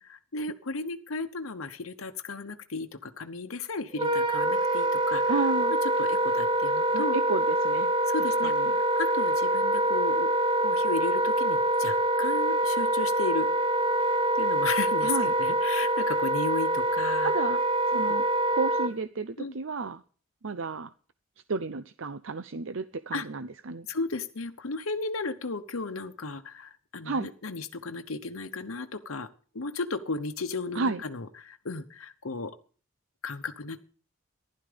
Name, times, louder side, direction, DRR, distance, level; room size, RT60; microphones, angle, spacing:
voice 1, 0.0-5.5 5.8-7.2 8.0-8.5 9.0-10.3 10.6-13.5 14.4-17.3 17.9-18.2 19.4-19.6 23.1-23.2 23.9-29.3 29.5-32.6 33.2-33.8, left 3 dB, 85° left, 6 dB, 1.0 m, -35 dB
Wind instrument woodwind instrument, 3.9-18.9, right 1 dB, 25° right, 1.1 m, -25 dB
voice 2, 5.3-5.7 6.9-7.9 8.4-8.7 15.0-15.3 17.2-17.6 17.9-18.3 18.5-20.0 20.4-20.9 21.5-23.9 27.0-27.3 30.7-31.0, right 4 dB, 65° right, 13 dB, 0.7 m, -32 dB
15.0 x 12.0 x 5.1 m, 0.41 s
head